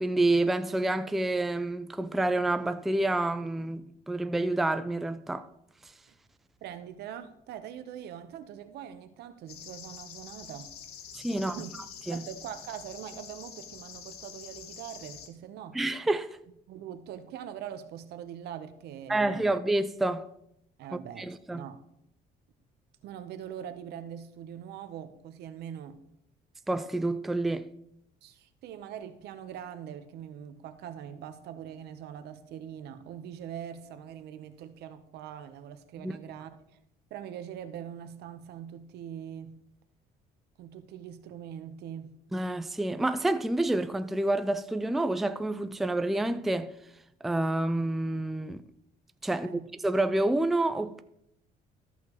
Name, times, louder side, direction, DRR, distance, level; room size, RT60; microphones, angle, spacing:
voice 1, 0.0-5.5 11.1-11.6 12.1-12.2 15.7-16.4 19.1-20.3 21.2-21.7 26.7-27.7 36.0-36.1 42.3-46.7 47.2-48.6 49.2-51.0, right 2 dB, ahead, 0.3 m, -28 dB
voice 2, 6.6-10.7 11.3-11.7 12.1-15.8 16.7-19.6 20.8-21.8 23.0-26.0 28.2-36.5 37.1-39.6 40.6-42.1 49.3-49.7, right 9 dB, 75° right, 0.8 m, -42 dB
sound 1, 9.5-15.3, left 8 dB, 70° left, 1.2 m, -46 dB
13.5 x 5.8 x 3.0 m
cardioid pair, 110°, 17 cm